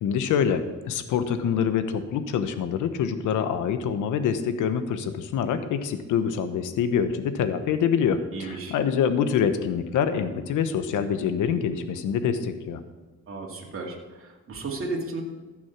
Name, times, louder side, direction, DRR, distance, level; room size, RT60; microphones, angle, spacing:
voice 1, 0.0-12.8, left 7 dB, 85° left, 10 dB, 1.0 m, -25 dB
voice 2, 8.3-8.7 13.3-15.2, right 3 dB, 45° right, -1 dB, 2.4 m, -34 dB
15.0 x 6.3 x 5.9 m, 1.2 s
cardioid pair, 90°, 30 cm